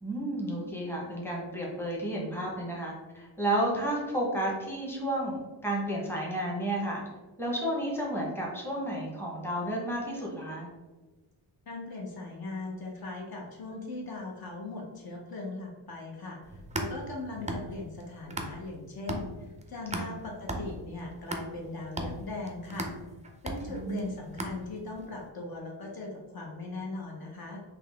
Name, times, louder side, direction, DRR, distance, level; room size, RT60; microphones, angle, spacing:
voice 1, 0.0-5.4 5.6-7.0 7.4-10.7 19.9-20.1 23.7-24.1, right 1 dB, 5° left, -3 dB, 0.8 m, -32 dB
voice 2, 11.7-16.4 16.7-19.3 19.7-22.9 23.4-27.6, left 2 dB, 50° left, 0 dB, 0.7 m, -39 dB
sound 1, 16.4-18.8 19.1-25.0, right 1 dB, 15° right, 0.3 m, -37 dB
3.8 x 2.8 x 3.3 m, 1.2 s
wide cardioid pair, 145°, 46 cm